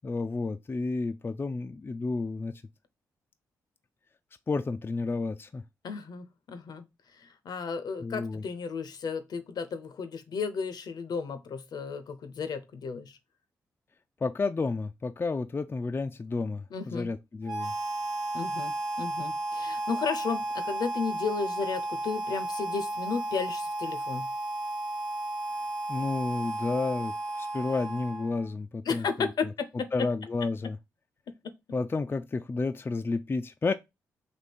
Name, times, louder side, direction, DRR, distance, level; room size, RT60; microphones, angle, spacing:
voice 1, 0.0-2.6 4.5-5.6 8.0-8.4 14.2-17.7 25.9-29.3 29.9-30.8 31.7-33.7, left 3 dB, 30° left, 0.4 m, -31 dB
voice 2, 5.8-6.9 7.5-13.1 16.7-17.1 18.3-24.3 28.9-29.9, left 5 dB, 65° left, 0.6 m, -33 dB
Harmonica, 17.4-28.5, right 2 dB, 60° right, 0.9 m, -33 dB
3.5 x 2.7 x 4.1 m
hypercardioid pair, 40°, 8 cm